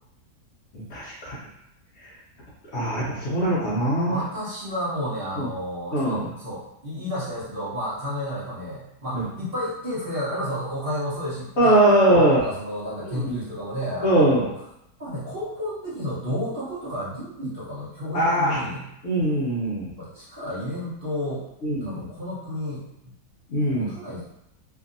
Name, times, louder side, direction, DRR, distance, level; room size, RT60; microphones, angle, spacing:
voice 1, 0.7-1.4 2.0-2.1 2.7-4.2 5.4-5.5 5.9-6.3 9.1-9.3 11.6-12.4 13.1-13.4 14.0-14.5 18.1-18.6 19.0-19.9 21.6-22.0 23.5-23.9, right 1 dB, 60° left, -7 dB, 0.8 m, -21 dB
voice 2, 4.1-11.8 12.2-14.5 15.0-18.9 20.0-21.5 21.8-23.1 23.7-24.2, equal, 45° right, -10 dB, 0.8 m, -31 dB
2.7 x 2.6 x 2.5 m, 0.83 s
omnidirectional pair, 1.6 m